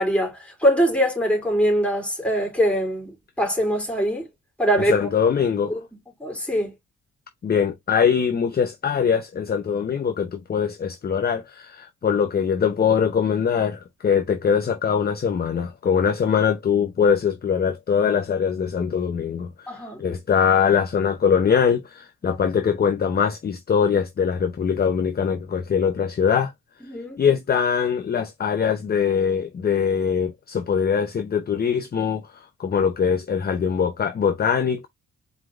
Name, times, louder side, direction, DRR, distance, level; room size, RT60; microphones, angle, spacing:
voice 1, 0.0-3.1 3.4-4.3 4.6-5.0 5.7-5.8 6.2-6.7 19.7-20.0 26.9-27.2, equal, 5° left, 3.0 m, -22 dB
voice 2, 4.8-5.8 7.4-26.5 27.2-34.9, left 7 dB, 30° left, 0.7 m, -22 dB
4.6 x 4.1 x 2.4 m
cardioid pair, 90°, 30 cm